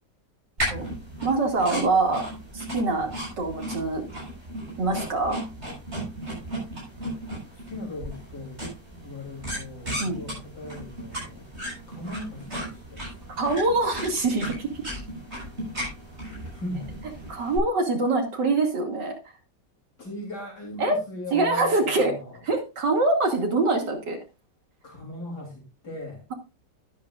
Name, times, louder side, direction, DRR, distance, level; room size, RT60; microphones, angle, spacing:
sound 1, 0.6-17.6, equal, 35° right, 7.2 m, -36 dB
voice 1, 1.2-2.3 2.5-3.1 3.4-4.0 4.8-5.4 10.0-10.2 13.4-14.8 17.3-19.1 20.8-21.0 21.3-22.1 22.5-24.2, right 3 dB, 85° right, 2 dB, 3.1 m, -24 dB
voice 2, 7.5-8.6 8.9-11.5 11.9-13.3 16.5-16.9 20.0-22.4 24.8-26.2, left 1 dB, 70° left, -1 dB, 4.1 m, -38 dB
13.0 x 11.0 x 2.5 m, 0.28 s
omnidirectional pair, 1.8 m